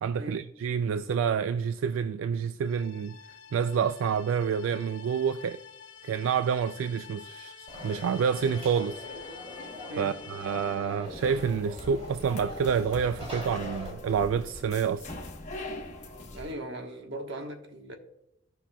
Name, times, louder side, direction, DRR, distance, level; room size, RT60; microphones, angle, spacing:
voice 1, 0.0-3.2 3.5-5.6 6.0-9.0 10.0-15.1, right 7 dB, 80° right, 0.3 m, -28 dB
sound 1, 2.6-11.1, left 7 dB, 80° left, 1.2 m, -48 dB
Conversation / Crowd, 7.7-13.9, left 1 dB, 30° right, 2.5 m, -42 dB
sound 2, 11.0-16.5, left 1 dB, 35° left, 1.0 m, -42 dB
voice 2, 16.3-18.0, right 1 dB, 60° right, 1.2 m, -38 dB
17.0 x 5.7 x 2.2 m
head